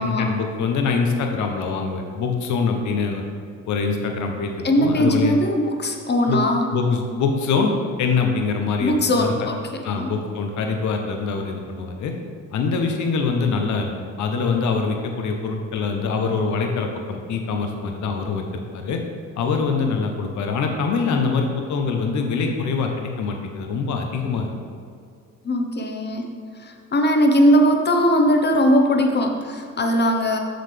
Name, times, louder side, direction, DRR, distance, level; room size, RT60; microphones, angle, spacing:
voice 1, 0.0-3.2 3.7-5.4 6.3-6.4 6.7-9.5 9.8-12.1 12.5-13.9 14.2-19.0 19.4-24.5, left 4 dB, 70° left, 3 dB, 0.9 m, -24 dB
voice 2, 4.6-6.7 8.8-9.6 9.9-10.1 25.4-26.2 26.6-30.4, equal, 35° left, 3 dB, 1.0 m, -19 dB
7.8 x 6.6 x 3.4 m, 2.3 s
cardioid pair, 90°, 30 cm